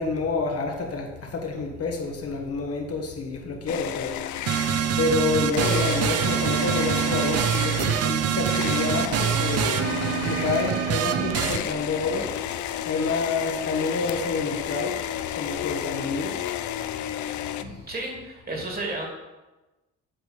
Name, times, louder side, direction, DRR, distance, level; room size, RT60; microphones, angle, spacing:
voice 1, 0.0-4.4 5.0-12.4 12.8-15.0 15.3-16.4, left 3 dB, 50° left, 2 dB, 1.2 m, -28 dB
sound 1, 3.7-5.1 5.5-17.6, left 12 dB, 75° left, 0.5 m, -32 dB
sound 2, 4.5-11.6, right 8 dB, 55° right, 0.6 m, -25 dB
voice 2, 17.6-19.1, right 2 dB, 30° right, 0 dB, 2.1 m, -33 dB
7.9 x 3.4 x 6.4 m, 1.1 s
cardioid pair, 90°, 30 cm